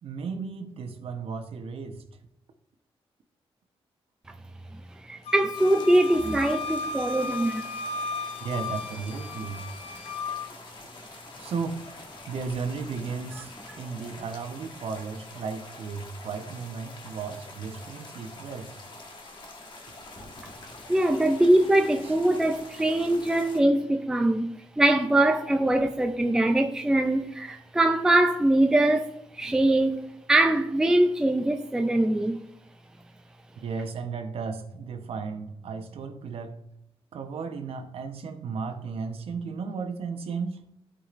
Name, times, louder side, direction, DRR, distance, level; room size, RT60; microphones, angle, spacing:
voice 1, 0.0-2.0 8.4-9.6 11.4-11.9 12.3-18.7 22.0-22.2 33.6-36.6 37.1-40.6, right 5 dB, 70° right, 0.9 m, -34 dB
voice 2, 5.0-7.6 20.9-32.4, right 1 dB, 5° right, 0.4 m, -23 dB
Wind instrument woodwind instrument, 5.3-10.5, left 3 dB, 85° left, 0.8 m, -35 dB
sound 1, 5.5-23.6, left 2 dB, 50° left, 1.3 m, -45 dB
14.5 x 4.9 x 2.5 m
wide cardioid pair, 145°, 10 cm